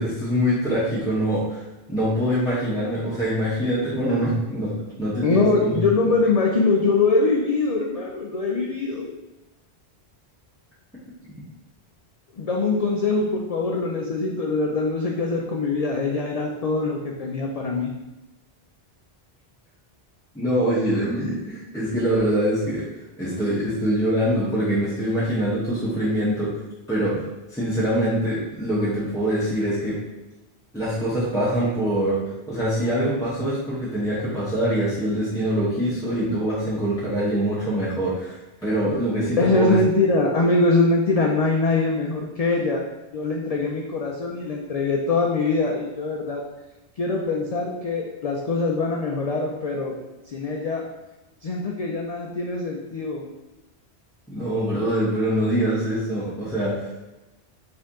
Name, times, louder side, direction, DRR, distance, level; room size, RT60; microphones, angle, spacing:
voice 1, 0.0-1.6 1.9-4.7 5.0-5.7 20.3-22.8 23.2-26.5 26.9-27.2 27.5-30.0 30.7-32.2 32.5-39.8 54.3-56.9, equal, 5° left, -10 dB, 0.9 m, -24 dB
voice 2, 5.2-9.1 12.3-17.9 39.4-42.9 43.1-46.5 47.0-50.0 50.3-50.9 51.4-53.3, left 3 dB, 60° left, 0 dB, 0.4 m, -23 dB
4.3 x 2.7 x 3.6 m, 1.1 s
omnidirectional pair, 1.1 m